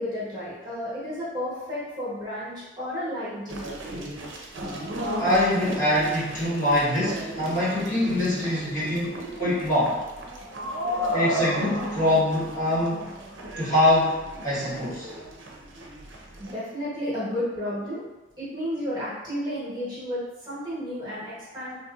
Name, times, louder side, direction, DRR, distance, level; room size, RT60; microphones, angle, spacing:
voice 1, 0.0-3.7 8.9-9.5 11.5-11.6 13.4-13.5 16.4-18.0 18.4-21.8, equal, 25° right, -10 dB, 1.1 m, -32 dB
sound 1, 3.5-16.5, equal, 85° right, 0.5 m, -34 dB
voice 2, 5.2-9.9 11.1-13.1 13.6-15.1, left 1 dB, 45° left, -10 dB, 1.2 m, -24 dB
3.2 x 2.7 x 2.3 m, 1.1 s
head